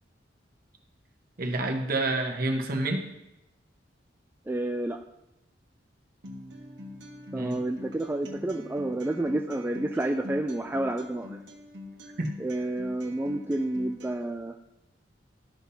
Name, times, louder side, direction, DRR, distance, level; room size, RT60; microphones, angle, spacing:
voice 1, 1.4-3.1 7.3-7.6 12.2-12.3, right 2 dB, 55° right, 3 dB, 1.1 m, -28 dB
voice 2, 4.5-5.0 7.3-11.4 12.4-14.5, right 1 dB, 10° right, 3 dB, 0.3 m, -30 dB
Acoustic guitar, 6.2-14.2, left 2 dB, 75° right, 1.3 m, -44 dB
13.0 x 6.0 x 2.8 m, 0.91 s
head